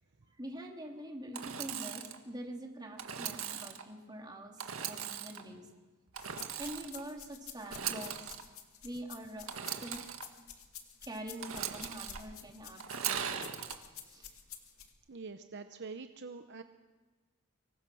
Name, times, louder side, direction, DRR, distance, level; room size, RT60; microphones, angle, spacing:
voice 1, 0.2-5.7 6.6-8.3 8.8-10.0 11.0-13.2 14.0-14.3, right 1 dB, 20° right, 1 dB, 3.1 m, -45 dB
Engine / Sawing, 1.3-2.2 3.0-3.8 4.6-5.4 6.1-7.0 7.6-8.4 9.5-10.2 11.4-12.2 12.8-13.7, right 8 dB, 85° right, 1.8 m, -39 dB
sound 1, 6.2-14.9, left 9 dB, 85° left, 2.3 m, -50 dB
voice 2, 15.1-16.6, right 4 dB, 55° right, 8 dB, 0.9 m, -45 dB
25.0 x 23.0 x 6.3 m, 1.3 s
head